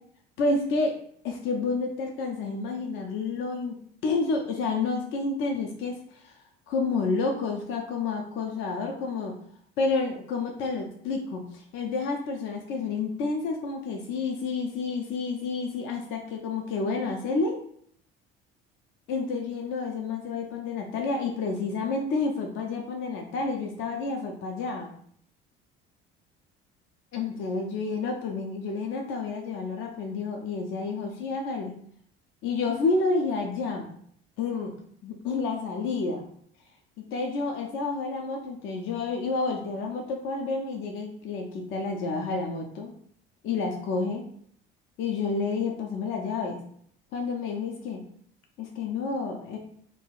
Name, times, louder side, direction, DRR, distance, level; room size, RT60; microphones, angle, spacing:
voice 1, 0.4-1.0 1.2-6.3 6.7-9.4 9.8-17.6 19.1-24.9 27.1-31.8 32.4-33.9 34.4-34.7 35.0-36.3 37.0-42.9 43.4-44.2 45.0-46.6 47.1-48.0 48.6-49.6, left 4 dB, 40° left, 2 dB, 0.5 m, -29 dB
3.5 x 2.3 x 2.4 m, 0.63 s
figure-of-eight pair, 60°, 30 cm